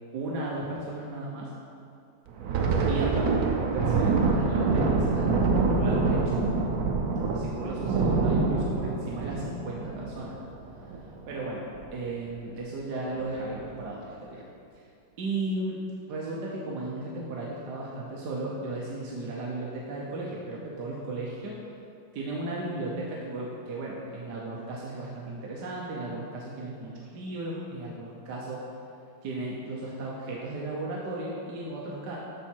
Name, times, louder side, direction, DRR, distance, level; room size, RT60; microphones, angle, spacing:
voice 1, 0.1-1.5 2.9-6.3 7.3-10.3 10.8-10.9 11.3-11.6 11.9-14.4 15.2-15.8 16.1-21.6 22.1-28.6 29.2-32.2, right 2 dB, 60° right, -4 dB, 1.3 m, -35 dB
Thunder, 2.3-11.3 11.7-11.9 12.3-12.5 13.2-13.6, right 4 dB, 75° right, 0.8 m, -26 dB
13.0 x 4.3 x 4.5 m, 2.5 s
omnidirectional pair, 2.4 m